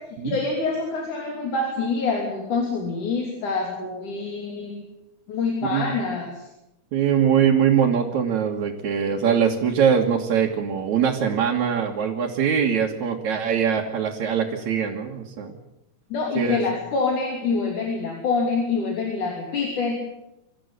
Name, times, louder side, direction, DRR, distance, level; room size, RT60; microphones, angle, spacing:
voice 1, 0.2-4.8 5.3-6.4 16.1-20.0, left 4 dB, 80° left, 0 dB, 4.7 m, -26 dB
voice 2, 6.9-15.6 16.4-16.6, right 7 dB, 70° right, -3 dB, 3.0 m, -22 dB
25.0 x 13.5 x 9.7 m, 0.91 s
omnidirectional pair, 3.4 m